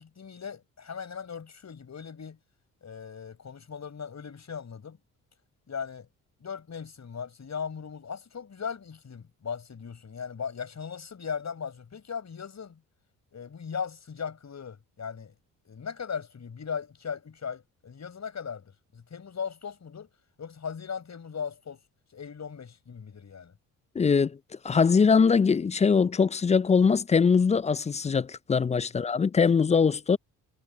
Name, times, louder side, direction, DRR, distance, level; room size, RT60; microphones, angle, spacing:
voice 1, 0.0-2.4 2.8-5.0 5.7-6.1 6.4-12.8 13.3-15.3 15.6-20.1 20.4-21.8 22.1-23.5, left 6 dB, 45° left, 6.5 m, -38 dB
voice 2, 24.0-24.4 24.6-30.2, left 5 dB, 20° left, 0.4 m, -22 dB
supercardioid pair, 55°, 38 cm